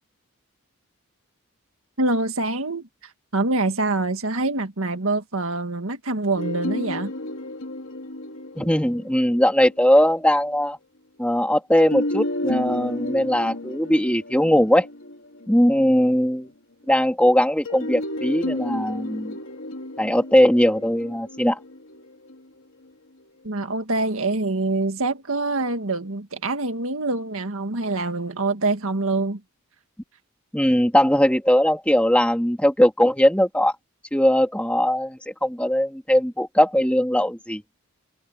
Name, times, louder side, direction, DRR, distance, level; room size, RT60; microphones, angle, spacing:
voice 1, 2.0-7.1 23.4-29.4, right 2 dB, 75° right, 1.9 m, -25 dB
sound 1, 6.4-10.2 11.8-16.2 17.7-22.8, left 1 dB, 65° left, 3.3 m, -32 dB
voice 2, 8.5-10.8 11.2-14.9 15.5-16.5 16.9-19.4 20.0-21.6 30.5-33.7 34.1-37.6, equal, 5° left, 3.1 m, -20 dB
head